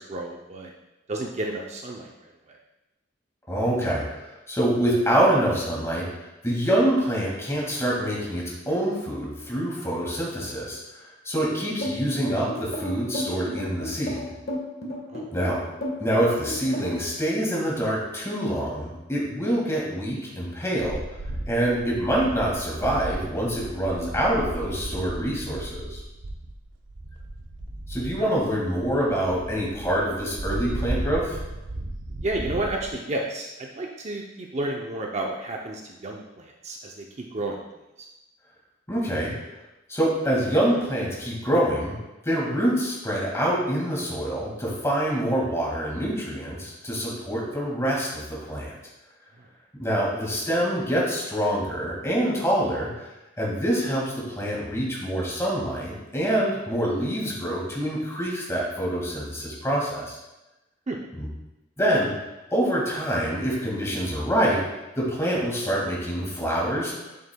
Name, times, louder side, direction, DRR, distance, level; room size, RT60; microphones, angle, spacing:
voice 1, 0.1-0.7 1.1-2.1 2.5-2.6 15.1-15.5 28.2-28.3 32.2-37.6 60.9-61.0, right 2 dB, 35° right, 0 dB, 0.6 m, -31 dB
voice 2, 3.5-10.8 11.2-14.2 15.3-15.6 16.0-21.0 21.5-26.0 27.9-31.4 38.9-39.3 39.9-42.0 42.2-48.7 49.8-53.1 53.4-60.2 61.2-61.3 61.8-62.1 62.5-64.6 65.0-66.9, right 1 dB, 15° left, -4 dB, 2.0 m, -26 dB
sound 1, 11.8-17.1, equal, 55° left, 1.6 m, -32 dB
sound 2, 20.8-32.9, right 1 dB, 80° right, 0.7 m, -35 dB
8.4 x 7.5 x 2.3 m, 0.99 s
head